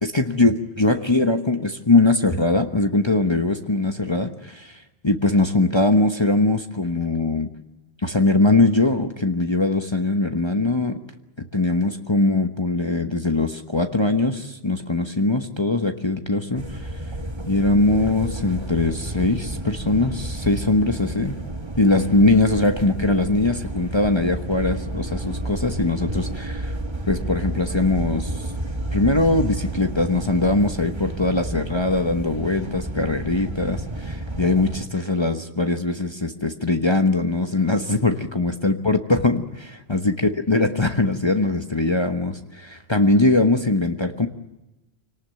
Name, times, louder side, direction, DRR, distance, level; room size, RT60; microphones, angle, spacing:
voice 1, 0.0-7.5 8.0-11.0 11.4-17.0 17.5-21.4 21.8-26.8 27.1-28.5 28.9-40.1 40.5-44.3, left 2 dB, 25° left, 6 dB, 1.2 m, -21 dB
sound 1, 16.5-34.9, right 1 dB, 25° right, 1.7 m, -31 dB
26.0 x 18.5 x 9.2 m, 1.0 s
omnidirectional pair, 1.1 m